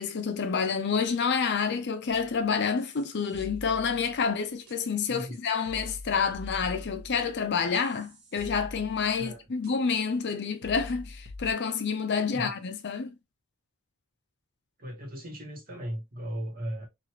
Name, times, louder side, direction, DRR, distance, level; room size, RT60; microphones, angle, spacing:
voice 1, 0.0-13.1, left 5 dB, 50° left, 0.5 m, -28 dB
sound 1, 2.1-2.4 2.8-4.3 4.7-4.8 5.3-5.4 5.7-9.3 9.6-9.7 10.3-10.4 10.6-11.5, left 2 dB, 70° right, 0.9 m, -44 dB
voice 2, 5.1-5.4 9.2-9.5 12.3-12.5 14.8-16.9, equal, 40° right, 1.0 m, -37 dB
3.0 x 2.4 x 2.9 m
head